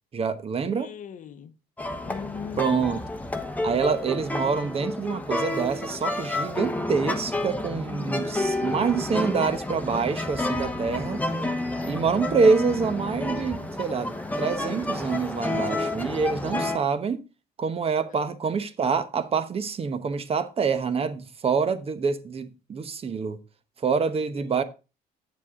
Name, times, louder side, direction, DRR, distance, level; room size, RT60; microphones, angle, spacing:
voice 1, 0.1-0.9 2.6-3.0 3.6-11.2 11.8-17.2 17.6-23.4 23.8-24.6, right 5 dB, 35° right, 1.0 m, -26 dB
voice 2, 0.6-1.5 2.0-2.9 18.0-18.2 24.4-24.6, left 7 dB, 50° left, 0.9 m, -40 dB
sound 1, 1.8-16.8, left 2 dB, 10° left, 1.0 m, -30 dB
8.8 x 7.4 x 3.6 m
cardioid pair, 110°, 17 cm